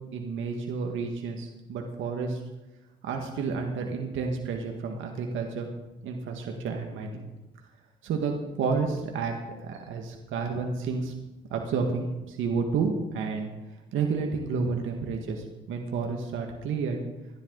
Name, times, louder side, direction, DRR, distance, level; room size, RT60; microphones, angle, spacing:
voice 1, 0.1-2.4 3.0-5.7 6.0-7.2 8.0-9.4 9.6-11.1 11.5-13.5 13.9-17.0, right 5 dB, 80° right, 2 dB, 1.9 m, -30 dB
27.5 x 11.0 x 4.0 m, 1.1 s
cardioid pair, 90°, 20 cm